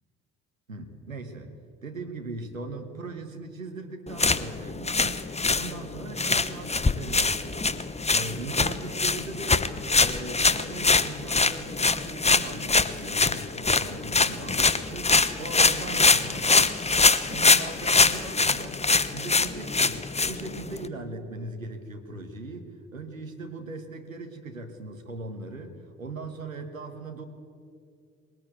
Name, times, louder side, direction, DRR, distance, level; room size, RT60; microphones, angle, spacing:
voice 1, 0.7-1.5 1.8-9.7 10.0-16.8 17.3-18.8 19.1-27.2, right 3 dB, 90° right, 5 dB, 1.4 m, -39 dB
sound 1, 4.1-20.9, left 4 dB, 15° left, 1.0 m, -24 dB
21.5 x 18.5 x 8.2 m, 2.3 s
figure-of-eight pair, 45°, 39 cm